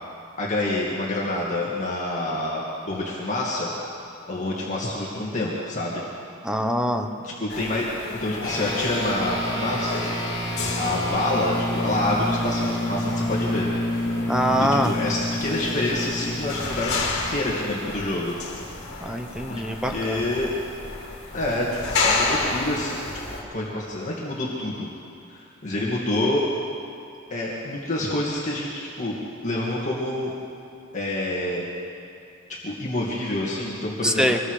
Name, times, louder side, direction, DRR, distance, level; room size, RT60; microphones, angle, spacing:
voice 1, 0.4-3.7 4.3-6.0 7.2-7.9 8.2-10.1 10.7-13.7 14.6-18.3 19.5-19.6 19.9-20.5 21.3-23.0 23.5-24.9 25.3-26.4 27.3-29.1 29.4-30.3 30.9-31.6 32.6-34.3, left 1 dB, 35° left, -5 dB, 2.4 m, -27 dB
voice 2, 6.4-7.1 14.3-14.9 19.0-20.2 34.0-34.4, equal, 5° right, 4 dB, 1.0 m, -24 dB
sound 1, 7.5-23.4, left 3 dB, 55° left, 3.1 m, -32 dB
sound 2, 8.4-18.1, left 1 dB, 20° left, 4.4 m, -29 dB
25.0 x 20.5 x 5.0 m, 2.5 s
head